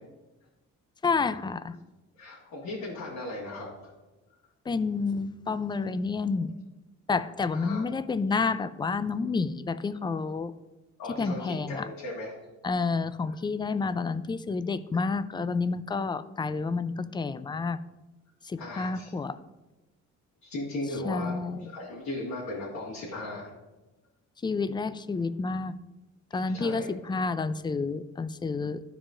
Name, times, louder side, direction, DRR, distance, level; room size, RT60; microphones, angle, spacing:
voice 1, 1.0-1.7 4.7-6.5 7.1-10.5 11.2-11.9 12.6-17.8 18.4-19.3 21.0-21.7 24.4-25.8 26.3-28.8, left 4 dB, 15° left, 13 dB, 0.3 m, -29 dB
voice 2, 2.2-3.9 7.5-7.8 11.0-12.3 18.6-19.1 20.4-21.3 21.6-23.5 26.3-26.9, left 2 dB, 75° left, -7 dB, 1.9 m, -37 dB
13.0 x 4.8 x 2.5 m, 1.1 s
cardioid pair, 90°, 30 cm